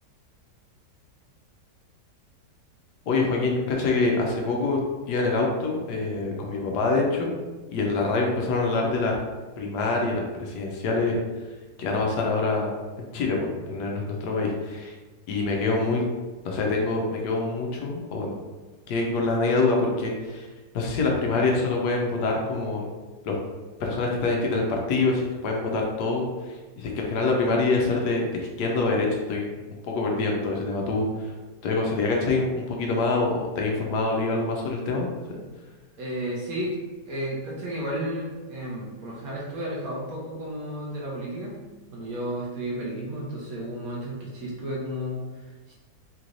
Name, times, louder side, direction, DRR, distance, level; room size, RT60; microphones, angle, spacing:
voice 1, 3.1-4.8 5.1-7.4 7.7-9.2 9.6-11.2 11.8-12.7 13.1-14.9 15.3-16.1 16.4-18.3 18.9-20.5 20.7-22.9 23.2-23.4 23.8-29.5 29.9-31.3 31.6-35.1, left 3 dB, 75° left, 0 dB, 1.1 m, -25 dB
voice 2, 36.0-36.8 37.0-41.6 41.9-45.7, equal, 60° right, -4 dB, 1.1 m, -33 dB
3.8 x 3.0 x 2.5 m, 1.2 s
omnidirectional pair, 1.9 m